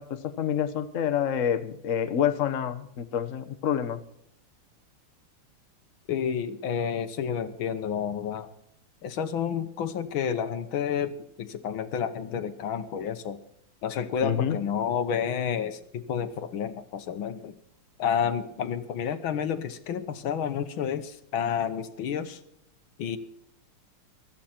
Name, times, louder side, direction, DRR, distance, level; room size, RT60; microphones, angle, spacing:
voice 1, 0.0-4.0 14.2-14.6, left 9 dB, 50° left, 9 dB, 1.0 m, -27 dB
voice 2, 6.1-8.5 9.0-13.4 13.8-17.6 18.0-22.4 23.0-23.2, left 8 dB, 70° left, 11 dB, 1.8 m, -30 dB
16.5 x 13.5 x 4.4 m, 0.75 s
omnidirectional pair, 2.4 m